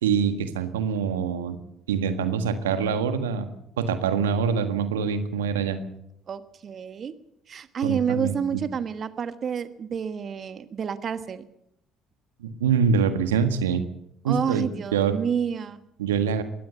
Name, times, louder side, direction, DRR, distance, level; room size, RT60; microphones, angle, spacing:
voice 1, 0.0-1.6 1.9-3.5 3.8-5.8 7.8-8.3 12.4-13.8 14.2-15.1 16.0-16.4, right 6 dB, 85° right, 10 dB, 1.6 m, -24 dB
voice 2, 6.3-7.1 7.5-11.5 14.2-15.8, right 7 dB, 45° right, 12 dB, 1.3 m, -29 dB
22.5 x 17.0 x 7.0 m, 0.77 s
hypercardioid pair, 55°, 0 cm